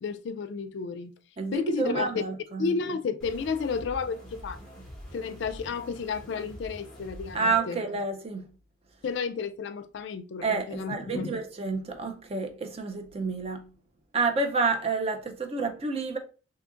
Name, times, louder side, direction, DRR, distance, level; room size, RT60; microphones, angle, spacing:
voice 1, 0.0-1.1 1.5-2.2 2.6-4.6 5.1-7.8 9.0-11.4, left 5 dB, 60° left, 0.3 m, -32 dB
voice 2, 1.4-2.8 7.3-8.5 10.4-13.7 14.1-16.2, right 4 dB, 30° right, 0.4 m, -29 dB
sound 1, 3.2-7.6, equal, ahead, 0.9 m, -45 dB
2.8 x 2.4 x 3.7 m
head